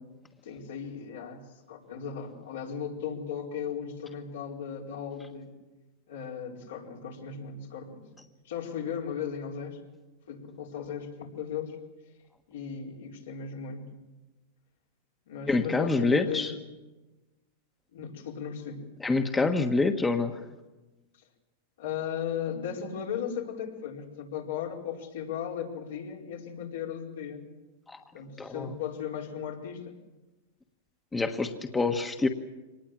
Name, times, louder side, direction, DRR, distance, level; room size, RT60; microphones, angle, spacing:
voice 1, 0.4-5.5 6.1-8.1 8.4-9.8 10.3-11.8 12.5-13.9 15.3-16.5 17.9-18.8 21.1-21.2 21.8-27.5 28.1-30.0, left 7 dB, 80° left, -1 dB, 4.8 m, -36 dB
voice 2, 15.5-16.5 19.0-20.5 27.9-28.0 28.4-28.7 31.1-32.3, left 3 dB, 15° left, 5 dB, 1.4 m, -26 dB
24.5 x 19.0 x 7.6 m, 1.2 s
hypercardioid pair, 115°, 0 cm